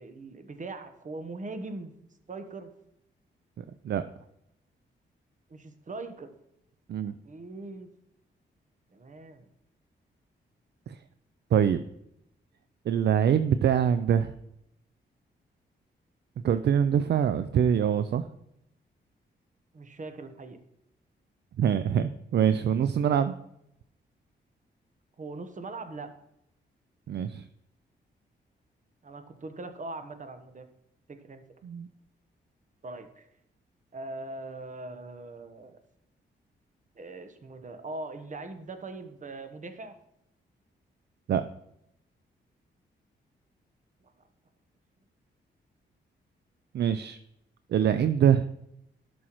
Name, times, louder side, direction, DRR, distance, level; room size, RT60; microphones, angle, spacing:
voice 1, 0.0-1.9 2.3-2.7 5.5-6.3 7.2-7.9 8.9-9.4 19.7-20.6 25.2-26.1 29.0-30.7 31.1-31.4 32.8-33.3 33.9-35.8 36.9-40.0 44.0-44.1, right 2 dB, 40° right, 8 dB, 1.0 m, -41 dB
voice 2, 3.6-4.0 6.9-7.1 10.9-11.0 11.5-11.8 12.9-14.3 16.4-18.3 21.6-23.3 27.1-27.5 31.6-31.9 41.3-41.4 46.7-47.2 47.7-48.5, right 8 dB, 60° right, 12 dB, 0.4 m, -24 dB
11.0 x 6.2 x 3.0 m, 0.80 s
cardioid pair, 70°, 19 cm